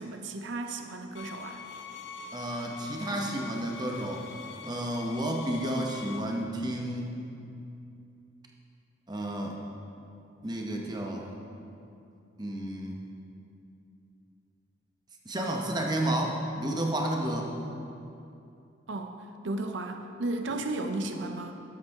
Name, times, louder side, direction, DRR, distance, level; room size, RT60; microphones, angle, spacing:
voice 1, 0.0-1.6 18.9-19.1 19.4-21.5, right 2 dB, 70° right, 5 dB, 0.5 m, -34 dB
sound 1, 1.1-6.2, left 5 dB, 70° left, 0.7 m, -44 dB
voice 2, 2.3-4.3 4.6-7.2 9.1-9.5 10.4-11.3 12.4-13.0 15.3-17.5, right 1 dB, 20° right, 0 dB, 0.9 m, -31 dB
12.5 x 8.1 x 3.5 m, 2.6 s
head